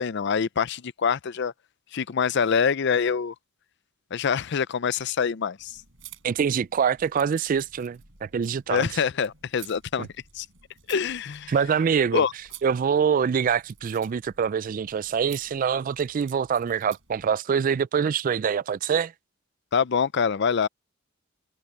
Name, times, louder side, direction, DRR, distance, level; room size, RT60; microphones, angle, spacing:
voice 1, 0.0-1.5 1.9-3.3 4.1-5.8 8.7-10.1 10.3-10.5 10.9-11.5 12.1-12.3 19.7-20.7, left 6 dB, 60° left, 0.5 m, -25 dB
sound 1, 5.6-17.2, right 10 dB, 70° right, 5.9 m, -51 dB
voice 2, 6.2-9.0 10.0-10.1 11.5-12.2 12.6-19.1, right 7 dB, 40° right, 0.3 m, -25 dB
head